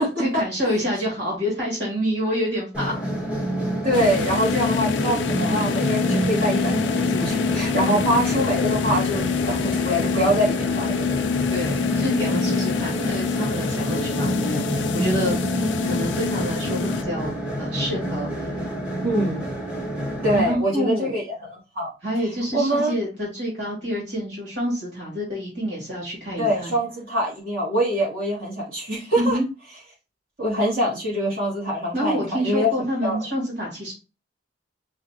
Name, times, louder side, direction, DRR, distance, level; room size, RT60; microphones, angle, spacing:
voice 1, 0.2-2.9 7.9-8.1 11.5-15.4 15.8-18.6 20.3-21.1 22.0-26.8 29.2-29.5 31.9-33.9, equal, 75° right, -3 dB, 2.7 m, -27 dB
sound 1, 2.7-20.5, equal, 5° right, 1.1 m, -27 dB
voice 2, 3.8-11.1 19.0-19.4 20.2-21.9 22.5-22.9 26.4-29.4 30.4-32.7 33.0-33.2, equal, 50° right, -7 dB, 2.9 m, -24 dB
sound 2, 3.9-17.0, left 7 dB, 75° left, 0.4 m, -26 dB
5.6 x 3.1 x 3.0 m, 0.31 s
head